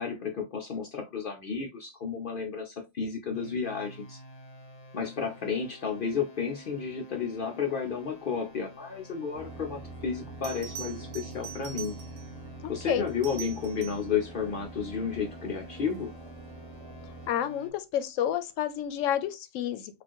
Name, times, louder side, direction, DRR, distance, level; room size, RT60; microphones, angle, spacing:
voice 1, 0.0-4.2 4.9-11.9 12.7-16.1, left 6 dB, 60° left, 0.6 m, -32 dB
sound 1, 3.3-17.7, equal, 30° left, 0.8 m, -49 dB
sound 2, 9.3-17.3, right 2 dB, 30° right, 1.1 m, -45 dB
Bell, 10.4-12.4 13.1-14.1 16.8-17.1, right 8 dB, 75° right, 0.9 m, -43 dB
voice 2, 17.3-20.0, left 10 dB, 75° left, 0.9 m, -30 dB
4.2 x 2.5 x 2.9 m
omnidirectional pair, 1.4 m